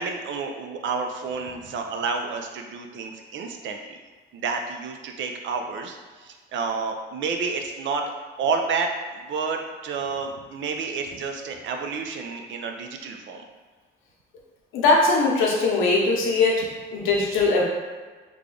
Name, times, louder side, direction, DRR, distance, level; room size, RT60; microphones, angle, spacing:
voice 1, 0.0-4.0 4.3-8.0 8.4-13.4, right 4 dB, 70° right, 4 dB, 0.5 m, -30 dB
voice 2, 14.7-16.6 16.9-17.6, left 3 dB, 90° left, -2 dB, 0.8 m, -20 dB
3.2 x 2.3 x 3.8 m, 1.4 s
cardioid pair, 90°, 20 cm